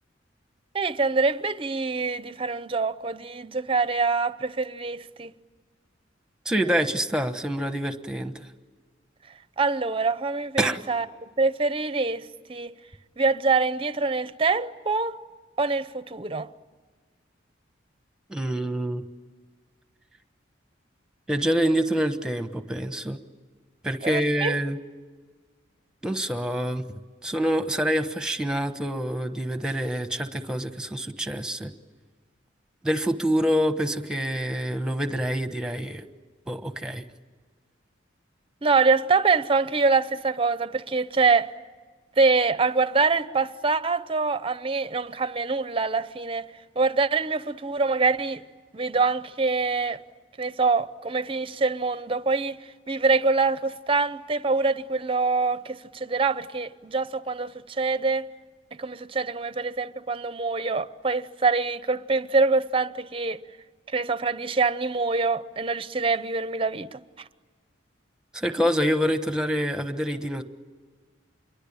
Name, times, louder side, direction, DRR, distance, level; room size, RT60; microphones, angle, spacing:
voice 1, 0.7-5.3 9.6-11.1 11.4-12.7 13.2-15.2 15.6-16.5 24.0-24.5 38.6-41.5 42.2-46.5 46.8-48.4 48.7-50.0 50.4-52.6 52.9-58.3 58.8-63.4 63.9-67.0, right 4 dB, 30° right, 0.7 m, -25 dB
voice 2, 6.4-8.5 10.6-10.8 18.3-19.1 21.3-23.2 23.8-24.8 26.0-26.8 27.2-31.7 32.8-36.0 36.5-37.0 68.3-70.4, equal, 5° right, 1.2 m, -26 dB
28.0 x 23.0 x 8.9 m
head